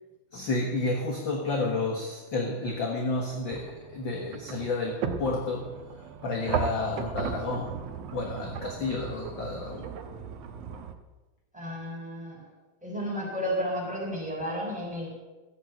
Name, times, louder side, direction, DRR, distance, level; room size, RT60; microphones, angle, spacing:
voice 1, 0.3-5.7 6.2-7.7 8.1-9.9, left 3 dB, 45° left, 1 dB, 1.9 m, -31 dB
sound 1, 3.5-10.9, right 7 dB, 65° right, 2.0 m, -36 dB
voice 2, 11.5-12.4 12.8-15.1, equal, ahead, -4 dB, 6.3 m, -32 dB
14.5 x 8.7 x 8.9 m, 1.1 s
omnidirectional pair, 3.5 m